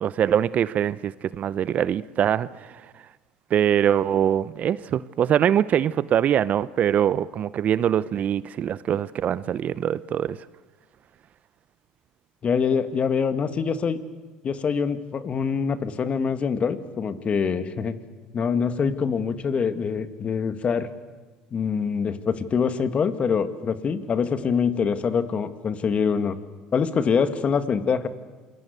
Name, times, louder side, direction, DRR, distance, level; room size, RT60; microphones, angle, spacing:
voice 1, 0.0-2.8 3.5-10.4, right 9 dB, 45° right, 0.7 m, -23 dB
voice 2, 12.4-14.0 14.4-18.0 18.3-20.9 21.5-26.4 26.7-28.1, left 6 dB, 35° left, 1.9 m, -24 dB
27.5 x 21.5 x 8.2 m
hypercardioid pair, 85°, 3 cm